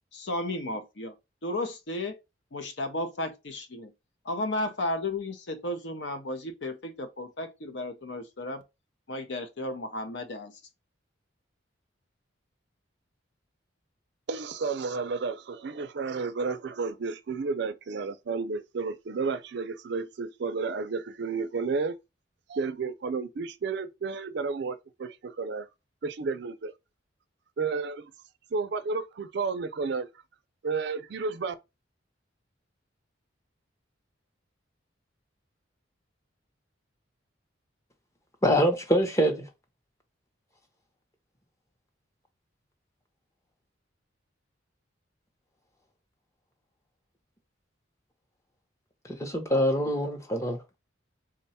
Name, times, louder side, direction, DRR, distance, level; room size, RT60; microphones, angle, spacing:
voice 1, 0.1-1.1 1.4-2.2 2.5-3.9 4.2-8.6 9.1-10.5, left 1 dB, 60° left, 0.7 m, -33 dB
voice 2, 14.3-22.0 22.5-25.7 26.0-26.7 27.6-28.1 28.5-30.1 30.6-31.5, right 4 dB, 60° right, 0.4 m, -32 dB
voice 3, 38.4-39.4 49.2-50.6, equal, 15° left, 0.7 m, -24 dB
3.7 x 2.2 x 4.1 m
head